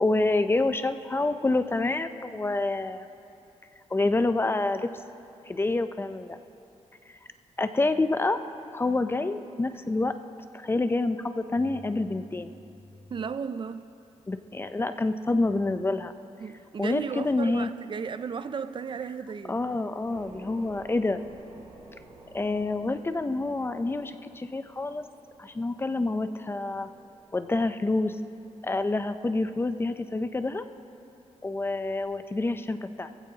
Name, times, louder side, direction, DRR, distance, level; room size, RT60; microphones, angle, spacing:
voice 1, 0.0-3.1 3.9-4.9 5.5-6.4 7.6-8.4 8.7-10.1 10.5-12.5 14.3-16.1 16.8-17.7 19.5-21.2 22.3-25.0 25.4-26.9 27.3-28.2 28.6-30.7 31.4-33.1, left 2 dB, 20° left, 10 dB, 0.5 m, -27 dB
voice 2, 13.1-13.9 16.4-19.6, right 6 dB, 45° right, 12 dB, 0.4 m, -34 dB
sound 1, 20.1-32.0, right 2 dB, 80° right, 3.2 m, -54 dB
21.0 x 15.5 x 2.8 m, 2.7 s
wide cardioid pair, 120°, 12 cm